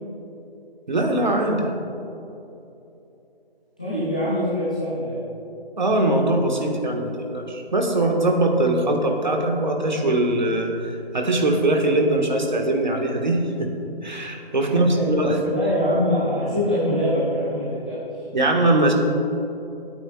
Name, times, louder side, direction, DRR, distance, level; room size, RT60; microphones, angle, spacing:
voice 1, 0.9-1.7 5.8-10.7 11.1-13.7 14.0-15.4 16.6-16.7 18.3-18.9, right 1 dB, 50° right, 1 dB, 1.5 m, -21 dB
voice 2, 3.8-5.2 14.7-15.1 15.5-18.0, left 1 dB, 10° left, -12 dB, 0.7 m, -24 dB
21.0 x 8.9 x 2.4 m, 2.9 s
figure-of-eight pair, 155°, 30 cm